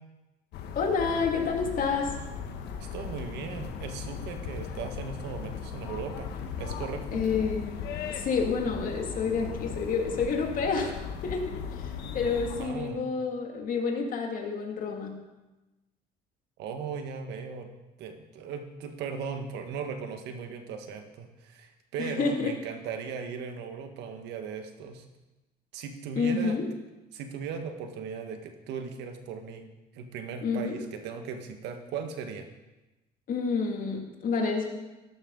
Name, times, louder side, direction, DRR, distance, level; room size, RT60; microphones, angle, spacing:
sound 1, 0.5-12.7, left 7 dB, 80° left, 1.3 m, -37 dB
voice 1, 0.7-2.2 7.1-7.8 8.1-11.0 11.2-15.2 22.0-22.5 26.1-26.7 30.4-30.8 33.3-34.7, left 5 dB, 55° left, 2 dB, 2.4 m, -29 dB
voice 2, 2.9-6.3 6.6-7.2 12.5-13.0 16.6-17.7 18.0-25.1 25.7-26.6 27.1-29.7 29.9-32.5, right 6 dB, 85° right, 5 dB, 1.6 m, -37 dB
14.0 x 11.5 x 3.9 m, 1.1 s
cardioid pair, 110°, 17 cm